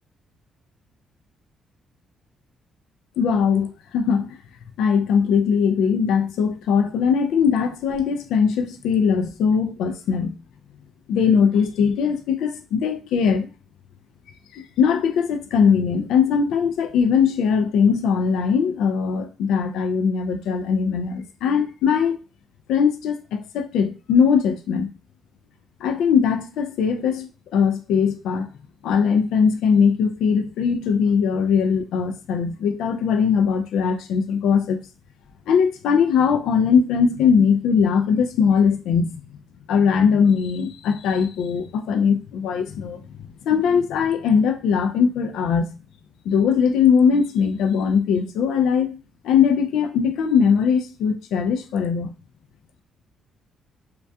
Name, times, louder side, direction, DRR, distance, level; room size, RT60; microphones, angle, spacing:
voice 1, 3.2-4.4 4.8-10.4 11.1-13.5 14.5-22.2 22.7-24.9 25.8-28.5 28.8-34.8 35.5-39.2 39.7-43.0 43.4-45.7 46.3-49.0 49.2-52.1, left 6 dB, 85° left, 0.3 m, -20 dB
2.2 x 2.2 x 2.6 m
cardioid pair, 90°, 0 cm